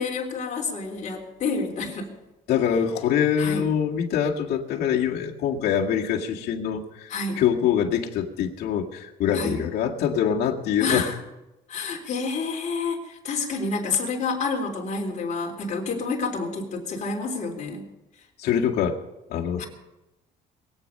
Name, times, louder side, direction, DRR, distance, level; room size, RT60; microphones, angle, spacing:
voice 1, 0.0-2.1 3.4-3.7 7.1-7.4 9.3-9.6 10.8-11.2 11.7-17.8 19.6-19.7, left 4 dB, 45° left, 0 dB, 3.8 m, -28 dB
voice 2, 2.5-11.1 18.4-19.0 19.3-19.6, left 8 dB, 70° left, -1 dB, 2.0 m, -24 dB
22.5 x 8.8 x 5.5 m, 0.97 s
cardioid pair, 110°, 17 cm